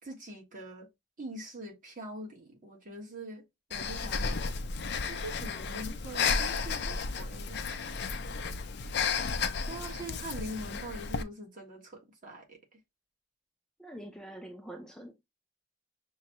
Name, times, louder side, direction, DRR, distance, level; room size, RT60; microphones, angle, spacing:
voice 1, 0.0-0.9 1.2-3.4 3.7-4.6 5.1-8.2 9.6-12.8, right 1 dB, 45° right, 1.5 m, -44 dB
Breathing, 3.7-11.2, left 5 dB, 60° left, 0.5 m, -33 dB
voice 2, 13.8-15.1, right 1 dB, 5° left, 0.6 m, -45 dB
6.2 x 2.3 x 2.9 m
head